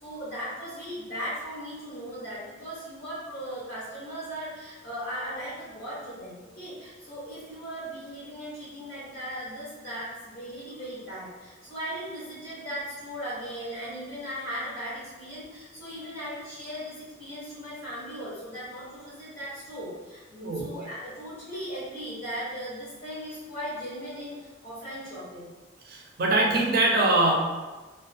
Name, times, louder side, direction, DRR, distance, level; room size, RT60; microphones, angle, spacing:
voice 1, 0.0-25.5, equal, 50° left, -9 dB, 0.7 m, -38 dB
voice 2, 25.9-27.3, right 2 dB, 45° right, -1 dB, 0.4 m, -23 dB
2.3 x 2.2 x 2.5 m, 1.2 s
head